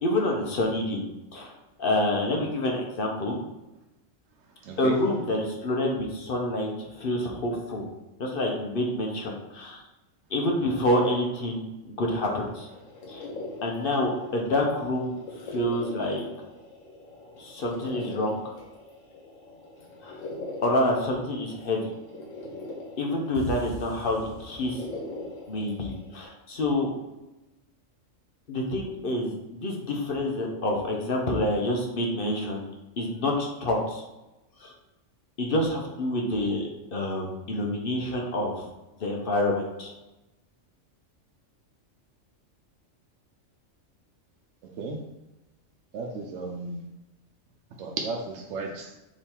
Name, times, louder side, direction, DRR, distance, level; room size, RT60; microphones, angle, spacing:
voice 1, 0.0-1.0 1.3-1.5 1.8-3.4 4.8-7.9 8.2-9.8 10.3-12.7 13.1-13.3 13.6-15.1 15.4-16.2 17.4-18.4 20.0-20.2 20.6-21.9 23.0-24.8 25.5-26.9 28.5-32.6 33.0-34.0 34.6-34.7 35.4-36.6 36.9-38.7 39.0-39.9, left 1 dB, 50° left, 0 dB, 0.8 m, -27 dB
voice 2, 4.6-5.0 44.8-45.0 45.9-46.8 47.8-48.9, right 3 dB, 75° right, 1 dB, 0.9 m, -34 dB
sound 1, 12.4-26.2, left 2 dB, 90° left, 1.3 m, -42 dB
sound 2, 23.3-25.2, right 1 dB, 35° right, 0.9 m, -38 dB
3.6 x 3.0 x 4.3 m, 0.99 s
omnidirectional pair, 1.3 m